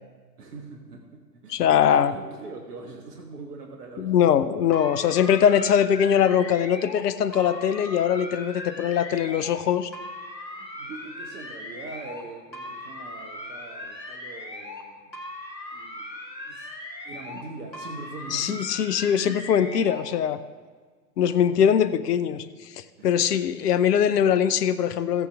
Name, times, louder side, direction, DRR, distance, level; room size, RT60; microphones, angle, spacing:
voice 1, 0.4-4.1 10.6-15.2 15.7-16.0 16.4-16.7 17.0-18.8 23.0-23.3, right 3 dB, 65° right, 2 dB, 1.4 m, -42 dB
voice 2, 1.5-2.1 4.0-9.9 18.3-20.4 21.2-25.3, left 8 dB, 70° left, 13 dB, 0.7 m, -22 dB
sound 1, 4.7-7.0 7.3-9.6 9.9-12.2 12.5-14.9 15.1-17.5 17.7-20.1, left 1 dB, 85° left, 1.7 m, -39 dB
14.5 x 8.4 x 3.4 m, 1.5 s
figure-of-eight pair, 100°, 50 cm